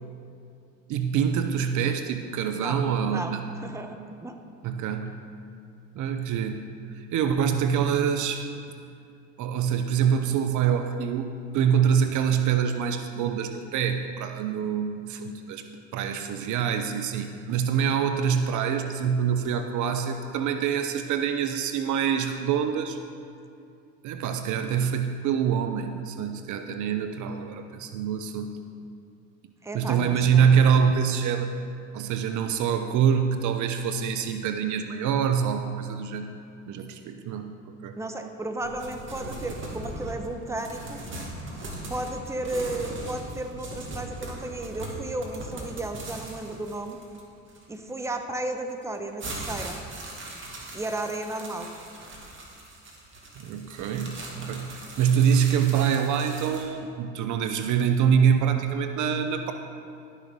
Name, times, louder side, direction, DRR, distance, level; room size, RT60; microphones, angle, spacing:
voice 1, 0.9-3.4 4.6-5.2 6.0-6.7 6.9-8.5 9.4-15.7 15.9-23.0 24.0-28.6 29.7-31.5 31.9-36.3 36.7-38.0 53.4-59.5, right 7 dB, 55° right, 7 dB, 0.8 m, -25 dB
voice 2, 3.6-4.4 29.6-30.5 38.0-41.0 41.9-47.0 47.7-49.8 50.7-51.7, right 2 dB, 10° right, 5 dB, 1.0 m, -34 dB
sound 1, 38.6-48.1 48.7-56.7, right 1 dB, 35° right, 2.3 m, -39 dB
11.5 x 6.4 x 5.4 m, 2.5 s
hypercardioid pair, 70°, 35 cm